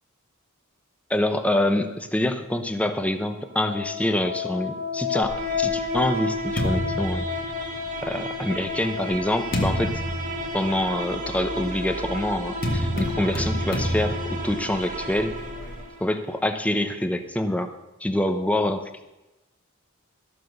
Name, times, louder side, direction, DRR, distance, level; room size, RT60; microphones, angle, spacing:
voice 1, 1.1-7.3 8.0-10.0 10.5-15.3 16.0-17.7 18.0-19.1, left 1 dB, 5° left, 8 dB, 0.7 m, -26 dB
sound 1, 3.4-16.3, left 3 dB, 40° right, 1.5 m, -32 dB
sound 2, 5.2-8.0 8.8-15.8, equal, 45° left, 1.7 m, -30 dB
13.0 x 7.1 x 6.4 m, 1.0 s
head